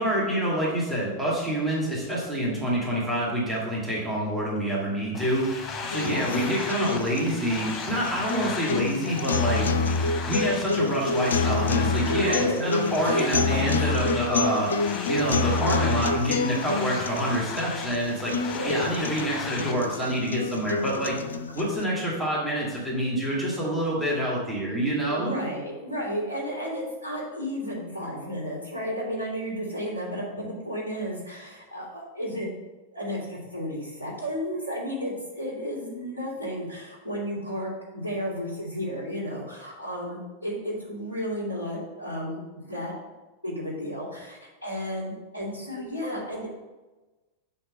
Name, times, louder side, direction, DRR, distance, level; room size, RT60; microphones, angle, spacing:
voice 1, 0.0-9.7 10.2-21.2 21.5-25.4, right 1 dB, 10° right, -6 dB, 2.0 m, -27 dB
sound 1, 5.1-19.7, left 4 dB, 25° left, 1.1 m, -36 dB
sound 2, 5.8-21.8, left 4 dB, 70° left, 0.4 m, -28 dB
voice 2, 6.0-6.4 12.1-12.7 13.0-14.1 18.4-18.9 25.1-32.5 32.9-42.9 43.4-46.5, equal, 85° right, -5 dB, 2.6 m, -33 dB
5.6 x 4.4 x 6.1 m, 1.2 s
figure-of-eight pair, 90°, 0 cm